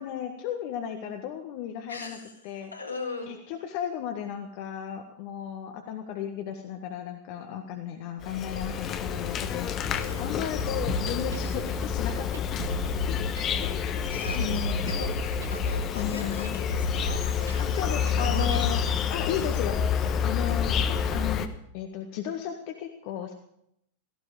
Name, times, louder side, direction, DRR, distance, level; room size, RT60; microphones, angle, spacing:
voice 1, 0.0-2.2 2.4-2.7 3.3-13.2 13.6-14.8 15.9-16.6 17.6-19.8 20.2-23.3, left 9 dB, 45° left, 4 dB, 1.7 m, -35 dB
voice 2, 1.9-2.3 2.7-3.4 9.9-10.2 14.1-18.6 19.2-19.6, left 3 dB, 80° left, 0 dB, 4.4 m, -40 dB
Insect, 8.2-21.5, left 7 dB, 30° left, 1.3 m, -28 dB
sound 1, 10.8-19.0, right 3 dB, 70° right, 1.9 m, -36 dB
17.0 x 15.0 x 4.9 m, 0.74 s
figure-of-eight pair, 90°, 0 cm